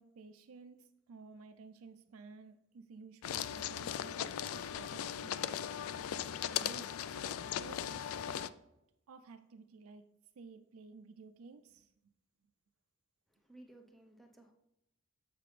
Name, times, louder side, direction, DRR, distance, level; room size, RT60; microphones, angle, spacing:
voice 1, 0.0-5.7 6.6-8.0 9.1-10.1 10.4-11.9, right 4 dB, 70° right, 0.4 m, -54 dB
sound 1, 3.2-8.5, left 9 dB, 70° left, 0.3 m, -38 dB
voice 2, 13.3-14.5, right 1 dB, ahead, 0.7 m, -58 dB
7.5 x 5.9 x 3.2 m
head